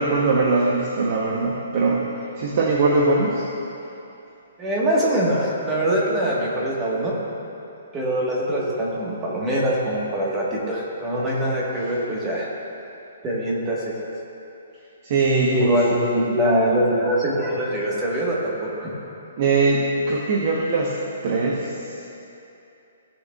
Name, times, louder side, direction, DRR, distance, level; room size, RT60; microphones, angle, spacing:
voice 1, 0.0-2.1 2.4-3.5 11.9-12.0 15.0-16.0 19.4-20.9 21.2-22.1, right 3 dB, 40° right, -2 dB, 0.9 m, -21 dB
voice 2, 4.6-7.1 7.9-12.5 13.2-13.9 15.5-18.9, right 1 dB, 15° right, -4 dB, 1.4 m, -23 dB
16.5 x 6.6 x 2.4 m, 2.8 s
hypercardioid pair, 165°, 0 cm